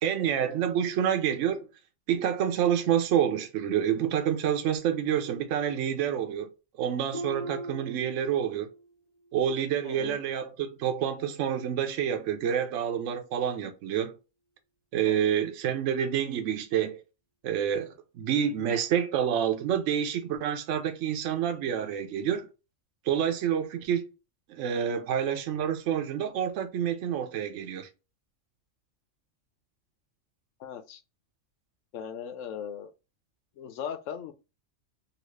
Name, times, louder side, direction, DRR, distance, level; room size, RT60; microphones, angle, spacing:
voice 1, 0.0-1.7 2.1-6.5 6.8-8.7 9.3-14.1 14.9-17.0 17.4-22.5 23.0-24.1 24.5-27.9, right 9 dB, 70° right, 0.9 m, -28 dB
Harp, 7.1-8.9 9.3-9.7 10.2-10.3, right 1 dB, 35° left, 0.5 m, -40 dB
voice 2, 9.8-10.2 15.1-15.2 30.6-31.0 31.9-32.9 33.6-34.3, left 8 dB, 75° left, 1.0 m, -38 dB
2.8 x 2.8 x 3.1 m
omnidirectional pair, 1.3 m